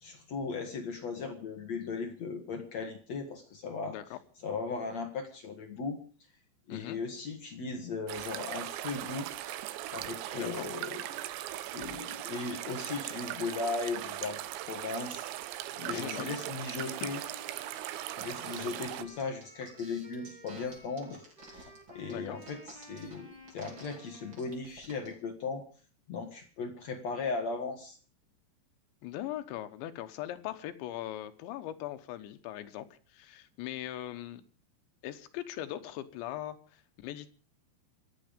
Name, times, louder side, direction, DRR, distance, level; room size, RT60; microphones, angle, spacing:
voice 1, 0.0-4.0 4.4-6.0 6.7-9.3 9.9-11.1 11.7-14.4 14.7-15.3 15.8-17.2 18.2-25.6 26.1-28.0, left 4 dB, 65° left, 5 dB, 1.8 m, -37 dB
voice 2, 3.9-4.2 6.7-7.0 10.3-10.7 15.9-16.4 16.8-17.0 22.1-22.4 29.0-34.4 35.0-37.3, left 13 dB, 80° left, 9 dB, 3.3 m, -40 dB
sound 1, 8.1-19.0, right 13 dB, 80° right, 3.1 m, -39 dB
Wind instrument woodwind instrument, 15.9-24.7, equal, 10° right, 2.8 m, -54 dB
sound 2, 18.4-25.1, right 2 dB, 25° right, 5.0 m, -52 dB
26.5 x 9.0 x 5.2 m, 0.40 s
omnidirectional pair, 5.3 m